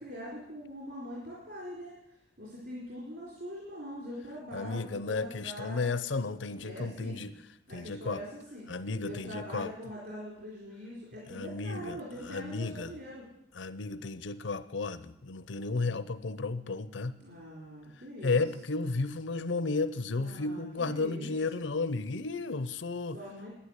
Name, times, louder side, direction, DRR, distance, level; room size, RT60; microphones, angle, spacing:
voice 1, 0.0-5.9 6.6-7.3 7.7-8.7 9.0-13.3 17.2-18.4 20.2-21.7 23.1-23.5, equal, 60° right, -5 dB, 4.2 m, -43 dB
voice 2, 4.5-7.3 7.7-8.2 8.7-9.7 11.3-12.0 12.2-12.9 13.6-17.2 18.2-23.2, left 3 dB, 75° left, 14 dB, 0.7 m, -33 dB
11.5 x 10.0 x 8.1 m, 0.83 s
head